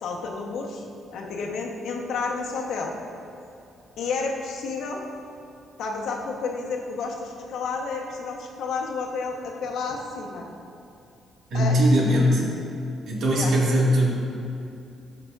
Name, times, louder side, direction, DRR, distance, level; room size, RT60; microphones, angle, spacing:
voice 1, 0.0-0.8 1.1-2.9 4.0-5.0 5.8-10.5 11.5-11.9 13.3-13.5, left 4 dB, 75° left, 0 dB, 1.0 m, -31 dB
voice 2, 11.5-12.5 13.1-14.1, equal, 65° right, -3 dB, 1.7 m, -20 dB
13.0 x 5.8 x 2.4 m, 2.6 s
cardioid pair, 90°, 0 cm